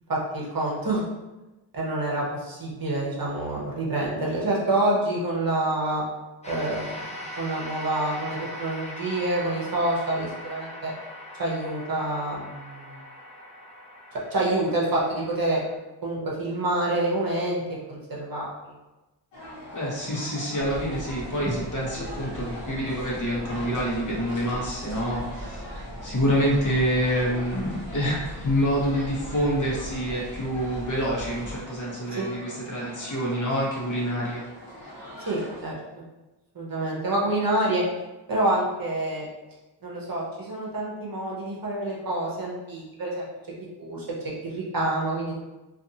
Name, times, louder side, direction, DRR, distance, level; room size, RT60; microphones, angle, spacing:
voice 1, 0.1-1.1 1.7-6.0 6.4-7.0 7.4-10.9 11.4-13.0 14.3-15.6 16.0-17.6 17.9-18.7 32.2-32.4 35.3-35.8 36.5-37.8 38.3-39.3 39.8-43.3 43.8-44.1 44.4-45.4, right 1 dB, 50° right, -4 dB, 0.8 m, -27 dB
sound 1, 6.4-15.8, left 1 dB, 15° left, 0.5 m, -40 dB
sound 2, 19.3-35.6, equal, 65° left, 1.0 m, -42 dB
voice 2, 19.7-25.7 26.0-34.4, equal, 40° left, -5 dB, 0.9 m, -27 dB
sound 3, 20.6-31.6, equal, 10° right, 0.8 m, -40 dB
2.5 x 2.5 x 2.7 m, 1.1 s
wide cardioid pair, 90°, 45 cm